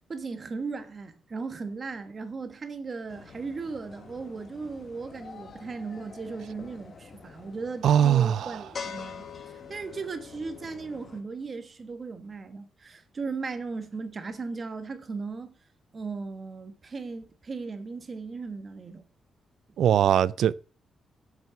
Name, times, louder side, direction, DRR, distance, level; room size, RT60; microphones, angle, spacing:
voice 1, 0.1-15.5 15.9-19.0, right 4 dB, 35° right, 1.3 m, -37 dB
sound 1, 3.1-11.2, left 6 dB, 45° left, 1.5 m, -45 dB
voice 2, 7.8-8.6 19.8-20.5, right 9 dB, 70° right, 0.4 m, -21 dB
7.5 x 6.0 x 7.2 m
cardioid pair, 125°, 0 cm